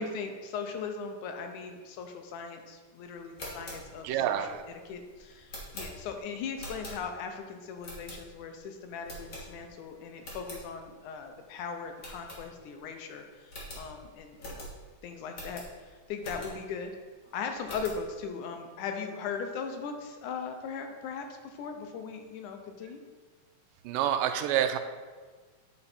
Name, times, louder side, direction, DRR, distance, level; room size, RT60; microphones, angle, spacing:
voice 1, 0.0-14.7 15.0-16.9 17.3-23.0, left 5 dB, 80° left, 5 dB, 2.0 m, -39 dB
sound 1, 3.2-7.4 7.8-8.6 9.0-9.8 10.1-10.6 11.1-11.2 11.4-11.5 12.0-12.9 13.1-13.2 13.5-16.8 17.2-18.1, equal, 40° left, 1.2 m, -44 dB
voice 2, 4.0-4.6 23.8-24.8, right 10 dB, 90° right, 9 dB, 2.2 m, -27 dB
8.8 x 4.3 x 4.2 m, 1.4 s
omnidirectional pair, 3.7 m